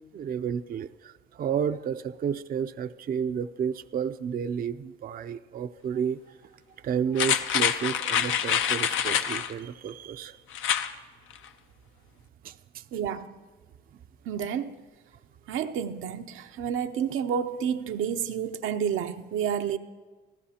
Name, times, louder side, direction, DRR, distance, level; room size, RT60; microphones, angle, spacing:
voice 1, 0.1-6.2 6.8-10.4 12.4-12.5, right 7 dB, 45° right, 0.5 m, -31 dB
sound 1, 7.2-9.5 10.5-10.9 11.3-11.4, left 9 dB, 85° left, 0.7 m, -26 dB
voice 2, 12.9-13.3 14.3-14.7 15.5-19.8, right 8 dB, 80° right, 0.7 m, -30 dB
25.0 x 14.5 x 2.9 m
cardioid pair, 90°, 20 cm